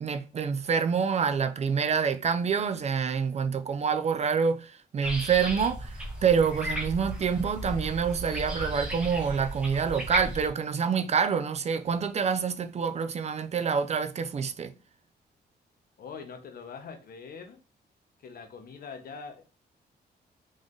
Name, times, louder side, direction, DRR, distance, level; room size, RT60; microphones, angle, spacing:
voice 1, 0.0-14.7, right 6 dB, 40° right, 0.4 m, -27 dB
sound 1, 5.0-10.5, right 1 dB, 5° right, 1.3 m, -35 dB
voice 2, 16.0-17.6 18.2-19.4, left 5 dB, 60° left, 1.0 m, -43 dB
3.8 x 3.3 x 3.7 m
cardioid pair, 130°, 18 cm